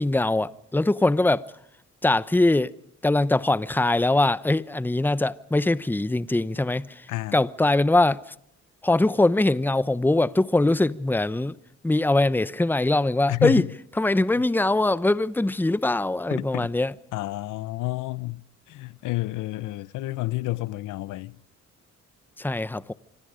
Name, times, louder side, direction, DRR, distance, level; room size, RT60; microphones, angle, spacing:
voice 1, 0.0-1.4 2.0-2.7 3.0-8.3 8.8-11.5 11.8-13.6 14.0-16.9 22.4-22.9, left 2 dB, 5° left, 0.8 m, -22 dB
voice 2, 7.1-7.4 13.3-13.7 16.3-16.7 17.1-21.4, left 18 dB, 90° left, 0.8 m, -30 dB
27.5 x 25.0 x 5.1 m
cardioid pair, 90°, 30 cm